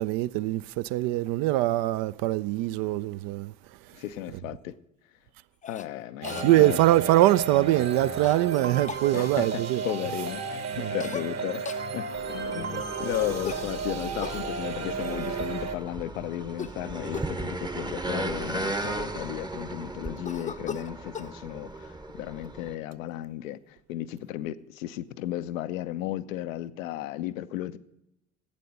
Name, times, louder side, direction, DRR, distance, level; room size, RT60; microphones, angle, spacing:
voice 1, 0.0-3.5 6.4-9.8 10.8-10.9, right 16 dB, 60° right, 0.5 m, -23 dB
voice 2, 3.9-4.7 5.7-6.8 9.1-11.7 11.9-27.8, left 13 dB, 75° left, 0.6 m, -34 dB
Cough, 5.6-5.9 6.2-6.5 8.2-8.4 8.9-9.1 11.0-11.3 11.7-11.9 13.4-14.4 16.5-16.8 17.1-17.4 18.1-18.2 18.4-19.4 20.2-21.3, left 6 dB, 20° left, 0.5 m, -38 dB
sound 1, 6.2-15.8, right 5 dB, 40° right, 1.2 m, -33 dB
sound 2, 12.1-22.7, right 2 dB, 10° right, 0.8 m, -36 dB
11.5 x 8.4 x 5.5 m
figure-of-eight pair, 50°, 40 cm